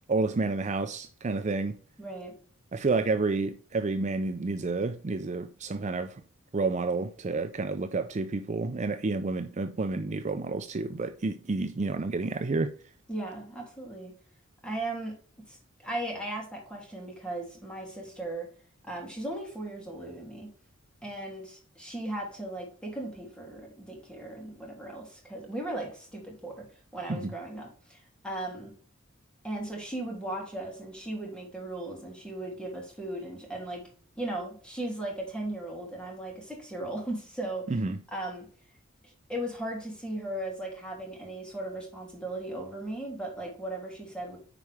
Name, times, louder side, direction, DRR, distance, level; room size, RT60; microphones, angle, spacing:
voice 1, 0.1-1.8 2.7-6.2 6.5-12.7 27.1-27.3 37.7-38.0, right 3 dB, 35° right, 0.5 m, -30 dB
voice 2, 2.0-2.4 13.1-14.1 14.6-15.1 15.5-18.5 18.8-20.5 21.0-26.7 26.9-28.7 29.4-33.8 34.2-37.8 38.1-38.5 39.0-44.4, right 1 dB, 5° left, 3.2 m, -37 dB
9.9 x 4.7 x 3.5 m
head